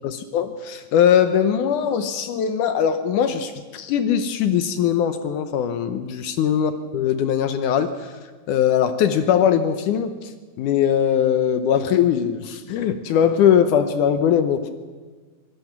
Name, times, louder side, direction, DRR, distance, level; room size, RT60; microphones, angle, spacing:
voice 1, 0.0-8.1 8.5-10.3 10.6-14.7, left 8 dB, 75° left, 9 dB, 2.3 m, -20 dB
25.5 x 17.0 x 6.0 m, 1.4 s
omnidirectional pair, 3.9 m